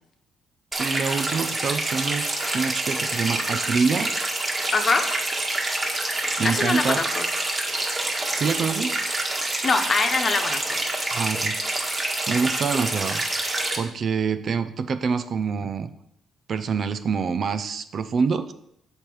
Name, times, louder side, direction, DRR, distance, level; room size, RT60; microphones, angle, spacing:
sound 1, 0.7-13.8, right 2 dB, 30° right, 1.5 m, -27 dB
voice 1, 0.8-4.1 6.4-7.0 8.3-9.0 11.1-11.6 12.3-13.2 13.8-15.9 16.5-18.5, right 5 dB, 55° right, 11 dB, 0.5 m, -26 dB
voice 2, 4.7-5.1 6.4-7.2 9.6-10.8, left 4 dB, 40° left, 5 dB, 1.1 m, -23 dB
7.2 x 5.0 x 4.6 m, 0.76 s
cardioid pair, 90°, 0 cm